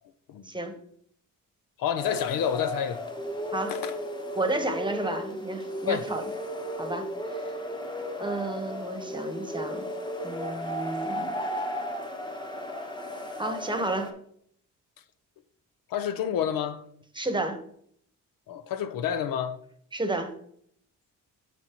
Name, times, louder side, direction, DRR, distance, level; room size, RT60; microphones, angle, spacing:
voice 1, 1.8-3.0 3.7-3.9 5.8-6.1 15.9-16.8 18.5-19.6, left 9 dB, 80° left, 0.6 m, -29 dB
sound 1, 2.0-14.1, equal, 15° left, 1.0 m, -35 dB
voice 2, 4.3-6.2 6.8-7.5 8.2-9.9 10.2-11.4 13.4-14.1 17.1-17.6 19.9-20.3, right 2 dB, 15° right, 1.0 m, -31 dB
12.0 x 4.2 x 2.9 m
cardioid pair, 95°, 33 cm